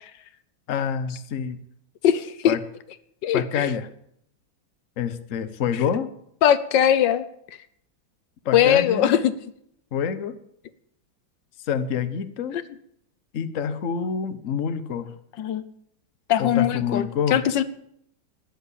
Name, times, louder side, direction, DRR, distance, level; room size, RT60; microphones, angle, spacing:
voice 1, 0.7-1.6 2.5-2.6 3.3-3.9 5.0-6.1 8.4-9.1 9.9-10.4 11.6-12.6 13.3-15.1 16.4-17.4, left 7 dB, 50° left, 11 dB, 1.2 m, -27 dB
voice 2, 2.0-2.5 3.2-3.7 6.4-7.2 8.5-9.3 15.4-15.6 16.3-17.6, left 10 dB, 70° left, 14 dB, 1.5 m, -20 dB
13.5 x 10.0 x 8.5 m, 0.71 s
omnidirectional pair, 2.1 m